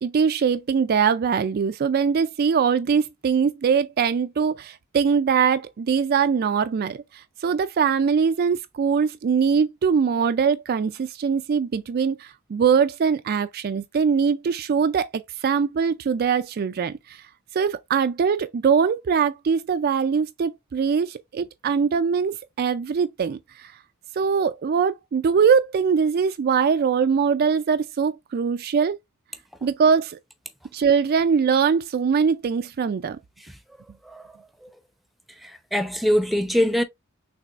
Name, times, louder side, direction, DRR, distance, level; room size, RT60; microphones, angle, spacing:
voice 1, 0.0-15.1 15.4-17.2 17.5-23.7 24.2-29.0 29.6-30.2 30.7-33.2, right 6 dB, 45° right, 0.3 m, -22 dB
voice 2, 35.4-36.8, equal, ahead, 0.7 m, -23 dB
6.1 x 3.3 x 2.4 m
head